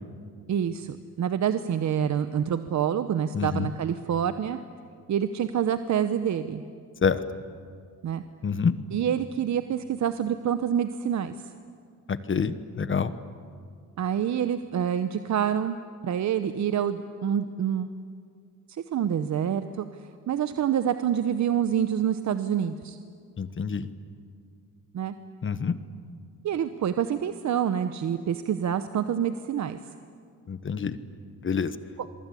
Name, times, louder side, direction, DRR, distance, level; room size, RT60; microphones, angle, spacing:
voice 1, 0.5-4.6 5.1-6.6 8.0-8.2 8.9-11.3 14.0-15.8 16.0-17.9 18.7-19.9 20.3-23.0 24.9-25.1 26.4-29.8 32.0-32.1, right 9 dB, 55° right, 10 dB, 1.0 m, -27 dB
voice 2, 3.3-3.7 7.0-7.2 8.4-8.7 12.1-13.1 23.4-23.9 25.4-25.8 30.5-31.0 31.4-31.7, left 6 dB, 35° left, 13 dB, 1.2 m, -26 dB
28.0 x 23.5 x 8.5 m, 2.2 s
cardioid pair, 105°, 34 cm